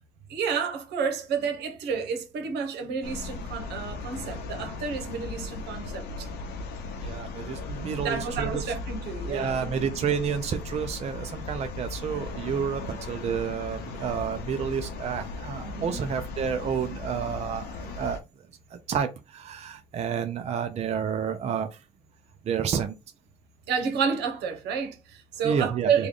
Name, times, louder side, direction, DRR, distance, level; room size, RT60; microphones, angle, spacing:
voice 1, 0.3-6.3 7.5-7.7 8.0-9.8 15.6-16.0 23.7-26.1, right 6 dB, 80° right, 1.0 m, -30 dB
sound 1, 3.0-18.2, left 3 dB, 80° left, 0.8 m, -37 dB
voice 2, 7.0-8.6 9.2-18.2 18.7-21.8 22.4-23.0 25.4-26.1, right 7 dB, 40° right, 0.5 m, -30 dB
3.3 x 2.3 x 3.8 m
cardioid pair, 110°, 17 cm